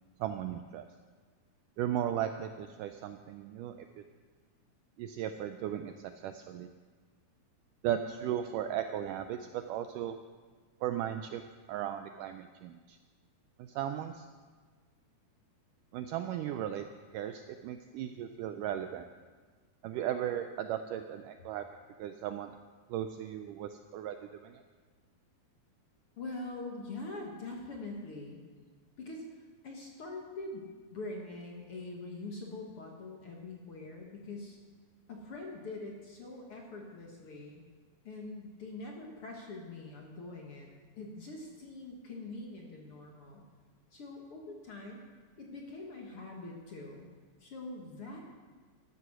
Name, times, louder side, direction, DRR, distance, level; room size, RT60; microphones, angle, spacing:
voice 1, 0.2-0.9 1.8-4.0 5.0-6.7 7.8-10.2 10.8-11.4 11.7-13.0 13.6-14.3 15.9-16.9 17.1-19.1 19.8-21.7 22.0-22.5 22.9-24.6, right 10 dB, 80° right, 8 dB, 1.9 m, -36 dB
voice 2, 26.2-28.4 29.0-34.6 35.1-37.6 38.0-40.7 41.0-43.4 43.9-45.0 45.4-47.1 47.4-48.2, left 2 dB, 50° left, 0 dB, 1.9 m, -44 dB
13.0 x 12.5 x 6.2 m, 1.4 s
omnidirectional pair, 4.2 m